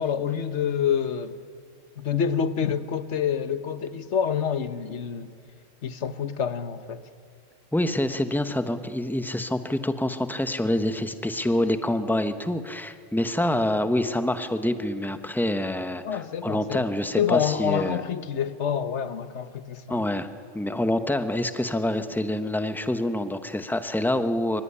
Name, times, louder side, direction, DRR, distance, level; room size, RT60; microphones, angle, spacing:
voice 1, 0.0-1.4 2.0-5.3 5.8-7.0 16.0-16.8 17.2-20.0, left 7 dB, 70° left, 1.4 m, -27 dB
voice 2, 7.7-18.0 19.9-20.3 20.5-24.6, left 1 dB, ahead, 0.9 m, -26 dB
25.0 x 24.0 x 9.9 m
omnidirectional pair, 1.2 m